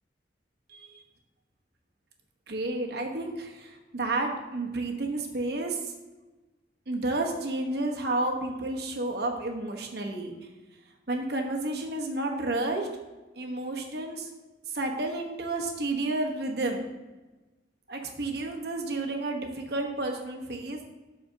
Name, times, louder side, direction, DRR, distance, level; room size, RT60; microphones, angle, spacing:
voice 1, 0.7-1.0 2.5-5.9 6.9-10.3 11.1-12.9 13.4-14.3 14.7-16.8 17.9-20.8, right 2 dB, 60° right, 2 dB, 1.0 m, -31 dB
12.5 x 4.2 x 2.7 m, 1.2 s
head